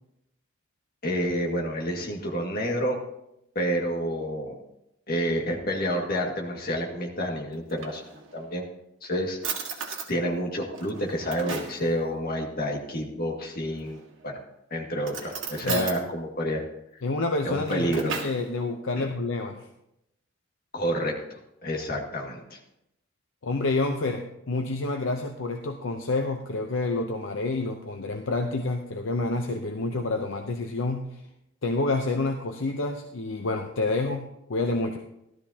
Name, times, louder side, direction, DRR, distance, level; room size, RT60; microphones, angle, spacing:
voice 1, 1.0-3.0 3.6-4.6 5.1-8.0 8.3-8.6 9.0-9.4 10.1-14.4 14.7-16.6 17.4-18.1 19.0-19.1 20.7-22.6, equal, 50° left, 1 dB, 2.0 m, -29 dB
Drawer open or close, 7.5-8.5 9.0-9.1 9.4-10.1 10.7-11.8 13.7-14.2 15.0-16.0 17.4-18.4, right 5 dB, 65° right, 1.8 m, -35 dB
voice 2, 17.0-19.6 23.4-31.2 31.6-34.2 34.5-35.0, left 2 dB, 70° left, 4 dB, 0.7 m, -28 dB
15.5 x 12.5 x 2.8 m, 0.83 s
head